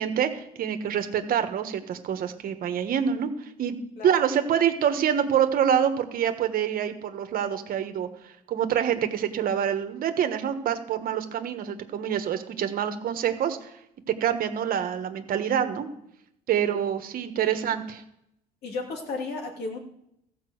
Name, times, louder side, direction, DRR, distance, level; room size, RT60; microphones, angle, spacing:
voice 1, 0.0-3.8 4.0-8.1 8.5-13.7 14.2-15.9 16.5-18.0, right 9 dB, 60° right, 8 dB, 1.3 m, -26 dB
voice 2, 17.4-17.8 18.6-19.8, left 3 dB, 70° left, 1 dB, 2.9 m, -34 dB
14.5 x 5.3 x 7.8 m, 0.79 s
cardioid pair, 110°, 17 cm